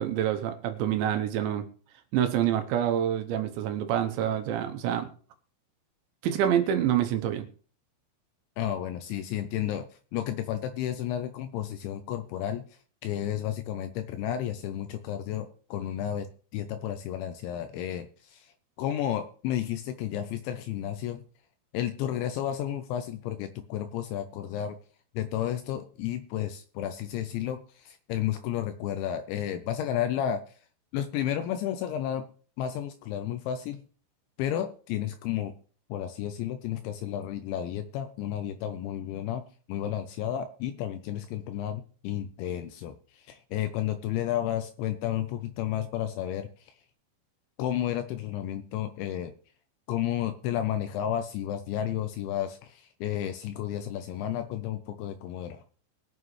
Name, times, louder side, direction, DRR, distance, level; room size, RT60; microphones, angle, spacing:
voice 1, 0.0-1.6 2.1-5.1 6.2-7.5, right 10 dB, 75° right, 7 dB, 3.1 m, -27 dB
voice 2, 8.6-12.6 13.0-18.5 18.8-21.2 21.7-24.8 25.1-30.4 30.9-32.3 32.6-33.8 34.4-35.5 35.9-39.4 39.7-46.7 47.6-49.3 49.9-55.6, left 11 dB, 80° left, 9 dB, 2.9 m, -32 dB
21.5 x 7.5 x 3.2 m, 0.42 s
omnidirectional pair, 5.5 m